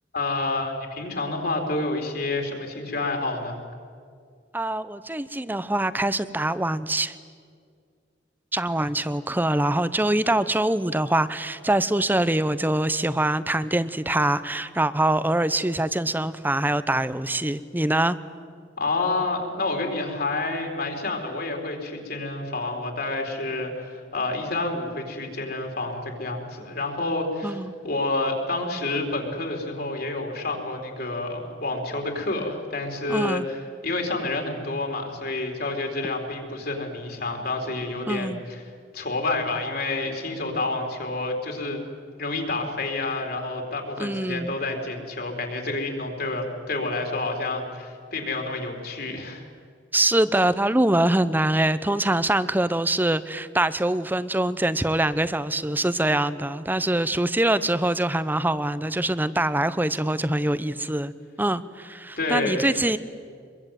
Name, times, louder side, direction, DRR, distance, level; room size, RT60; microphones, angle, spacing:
voice 1, 0.1-3.6 18.8-33.6 33.8-38.6 38.9-41.8 42.2-49.5 62.2-62.8, left 2 dB, 55° left, 2 dB, 4.4 m, -29 dB
voice 2, 4.5-7.2 8.5-18.2 27.4-27.7 33.1-33.5 38.1-38.4 44.0-44.6 49.9-61.1 61.4-63.0, right 1 dB, 10° right, 14 dB, 0.8 m, -24 dB
25.0 x 22.5 x 9.2 m, 2.1 s
head